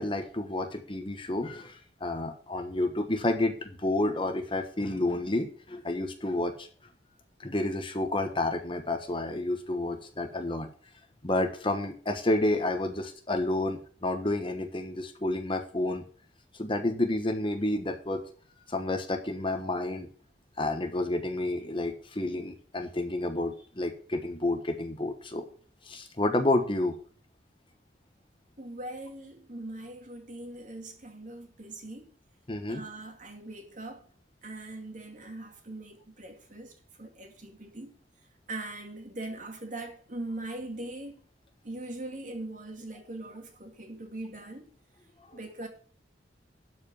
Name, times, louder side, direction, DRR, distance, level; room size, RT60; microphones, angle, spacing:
voice 1, 0.0-6.7 7.4-10.7 11.2-16.0 16.5-18.2 18.7-20.1 20.6-25.5 25.8-26.9 32.5-32.8 45.3-45.4, left 2 dB, 30° left, 1.2 m, -30 dB
voice 2, 28.6-32.1 32.7-34.0 34.4-37.9 38.5-41.2 41.6-44.7 45.3-45.7, right 2 dB, 45° right, 2.3 m, -41 dB
12.0 x 5.2 x 7.1 m
head